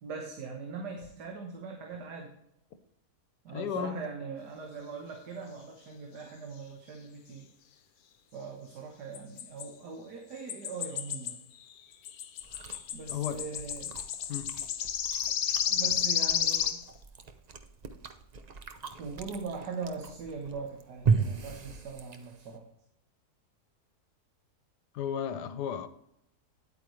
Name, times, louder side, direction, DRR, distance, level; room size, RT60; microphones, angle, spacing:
voice 1, 0.0-2.3 3.5-7.5 8.3-11.4 12.9-13.9 15.7-16.8 19.0-22.6, right 5 dB, 85° right, 1.7 m, -41 dB
voice 2, 3.5-4.0 13.1-13.5 14.3-14.5 24.9-25.9, left 8 dB, 85° left, 1.4 m, -34 dB
sound 1, 9.1-9.7 10.5-11.4 11.7-16.8, left 9 dB, 70° left, 1.1 m, -31 dB
Chewing mastication, 12.4-22.6, right 5 dB, 70° right, 0.4 m, -36 dB
10.0 x 8.6 x 3.2 m
omnidirectional pair, 1.7 m